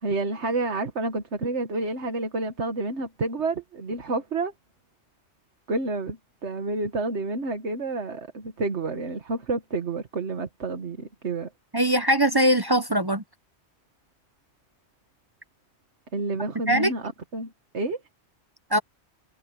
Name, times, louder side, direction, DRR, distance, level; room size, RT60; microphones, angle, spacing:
voice 1, 0.0-4.5 5.7-11.5 16.1-18.0, right 3 dB, 85° right, 1.9 m, -29 dB
voice 2, 11.7-13.2 16.7-16.9 18.7-18.8, right 1 dB, 25° right, 0.8 m, -21 dB
omnidirectional pair, 1.1 m